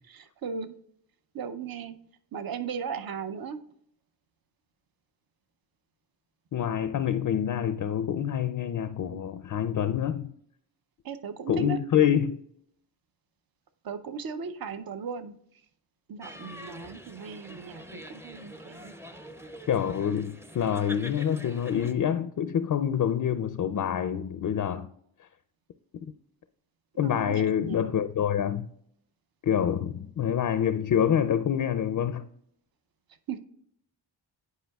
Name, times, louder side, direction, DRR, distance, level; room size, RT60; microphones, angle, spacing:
voice 1, 0.1-0.7 1.3-2.0 2.3-3.6 11.0-11.8 13.8-15.4 16.1-18.9 26.9-27.9 33.3-33.4, right 6 dB, 55° right, 0.6 m, -37 dB
voice 2, 6.5-10.3 11.5-12.4 19.7-24.9 27.0-28.7 29.4-32.3, left 9 dB, 50° left, 0.4 m, -26 dB
sound 1, 16.2-21.9, equal, 5° right, 0.5 m, -45 dB
10.5 x 4.7 x 2.3 m
cardioid pair, 60°, 43 cm